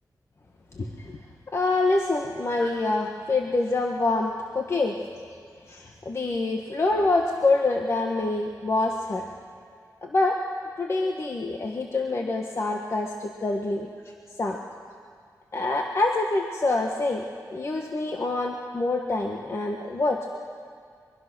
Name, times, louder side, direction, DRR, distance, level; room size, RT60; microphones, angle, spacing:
voice 1, 0.7-1.2 1.5-5.0 5.7-9.3 10.0-10.4 10.8-13.9 14.4-14.6 15.5-17.2 17.5-20.4, left 2 dB, 40° left, 1 dB, 1.4 m, -26 dB
23.0 x 23.0 x 6.2 m, 2.1 s
wide cardioid pair, 140°, 7 cm